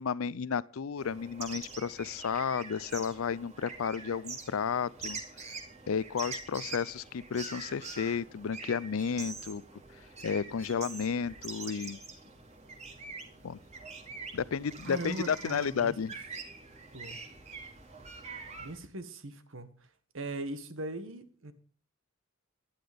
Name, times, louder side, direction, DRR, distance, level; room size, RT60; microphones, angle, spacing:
voice 1, 0.0-5.2 5.9-9.6 10.2-12.0 13.4-13.6 14.3-16.1, left 6 dB, 85° left, 0.5 m, -32 dB
sound 1, 1.0-18.8, right 4 dB, 35° right, 2.6 m, -45 dB
voice 2, 14.8-15.9 16.9-17.2 18.6-19.7 20.1-21.5, right 2 dB, 70° right, 1.5 m, -39 dB
11.5 x 11.5 x 5.2 m
head